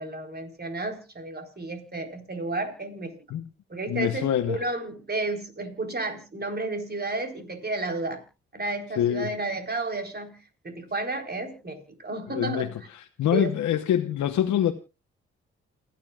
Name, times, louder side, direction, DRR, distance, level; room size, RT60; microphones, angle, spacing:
voice 1, 0.0-3.1 3.7-8.2 8.5-10.4 10.6-12.7 13.3-13.5, right 2 dB, 35° right, 4.2 m, -32 dB
voice 2, 3.9-4.6 9.0-9.3 12.3-14.7, left 10 dB, 75° left, 1.0 m, -25 dB
29.0 x 9.7 x 2.4 m
supercardioid pair, 45°, 29 cm